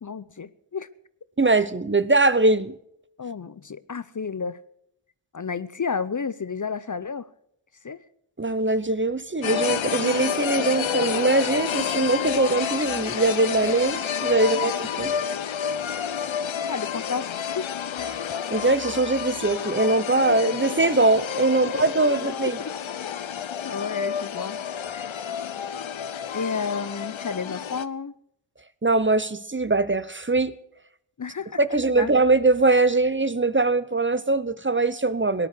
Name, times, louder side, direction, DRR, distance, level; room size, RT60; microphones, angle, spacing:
voice 1, 0.0-0.9 1.6-1.7 3.2-4.6 5.3-7.3 7.8-8.0 14.4-14.6 16.7-17.3 17.5-17.7 21.6-21.8 22.4-22.7 23.6-24.6 24.9-25.2 26.3-28.1 31.2-31.6 31.9-32.1, left 5 dB, 40° left, 0.7 m, -31 dB
voice 2, 1.4-2.7 8.4-15.1 18.1-18.2 18.5-22.6 28.8-30.5 31.6-35.5, right 2 dB, 25° right, 0.8 m, -22 dB
sound 1, 9.4-27.8, left 8 dB, 70° left, 0.8 m, -29 dB
18.0 x 11.0 x 6.7 m
wide cardioid pair, 65°, 48 cm